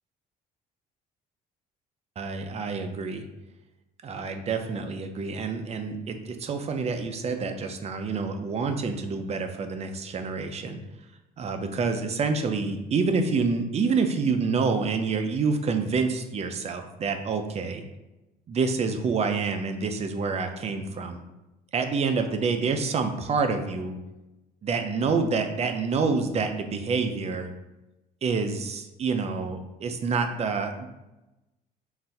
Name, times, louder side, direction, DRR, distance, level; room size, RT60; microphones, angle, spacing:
voice 1, 2.2-3.2 4.0-10.8 11.4-17.8 18.5-21.2 21.7-24.0 24.6-27.5 28.2-30.9, right 4 dB, 40° right, 6 dB, 0.5 m, -27 dB
4.0 x 2.6 x 4.1 m, 0.99 s
cardioid pair, 110°, 17 cm